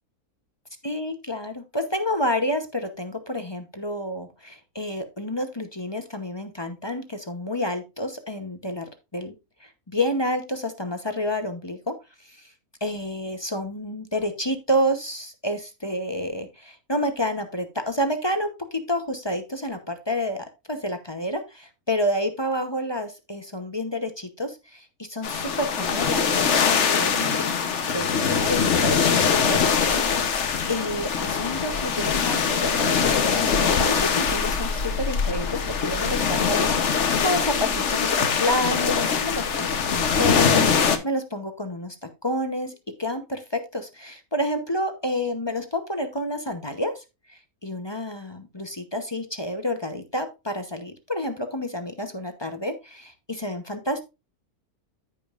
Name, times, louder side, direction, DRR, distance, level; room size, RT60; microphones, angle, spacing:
voice 1, 0.8-9.3 9.6-11.9 12.2-12.5 12.8-27.5 27.9-30.0 30.7-47.0 47.3-54.0, left 1 dB, 25° left, 7 dB, 0.7 m, -29 dB
sound 1, 25.2-41.0, left 6 dB, 55° left, 1.2 m, -23 dB
14.5 x 5.3 x 2.5 m, 0.25 s
omnidirectional pair, 1.6 m